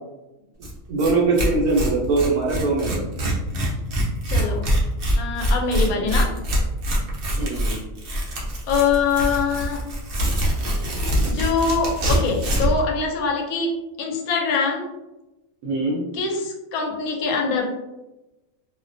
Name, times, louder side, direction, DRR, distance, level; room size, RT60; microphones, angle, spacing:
Tearing, 0.6-0.7 1.0-1.1 1.4-12.8, equal, 55° right, 0.7 m, -24 dB
voice 1, 0.9-3.0 5.9-6.3 7.3-7.8 15.6-16.0, right 3 dB, 75° right, -3 dB, 1.0 m, -22 dB
voice 2, 4.3-4.7 5.2-6.4 8.7-9.8 11.2-14.9 16.1-17.7, left 5 dB, 90° left, 1 dB, 1.0 m, -24 dB
2.5 x 2.1 x 2.5 m, 1.0 s
omnidirectional pair, 1.4 m